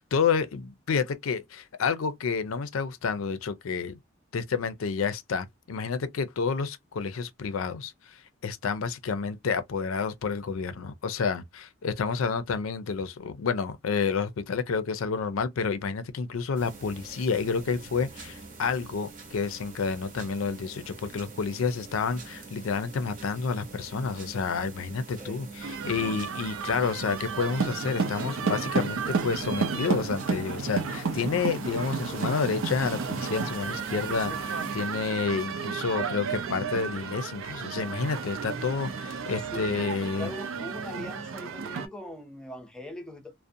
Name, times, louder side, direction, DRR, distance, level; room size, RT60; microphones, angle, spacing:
voice 1, 0.0-4.0 4.3-40.3, left 5 dB, 85° left, 0.4 m, -30 dB
sound 1, 16.5-34.8, right 4 dB, 40° right, 0.7 m, -44 dB
sound 2, 25.6-41.9, right 5 dB, 80° right, 0.4 m, -32 dB
voice 2, 39.5-43.3, equal, 5° left, 0.5 m, -41 dB
2.5 x 2.1 x 2.6 m
head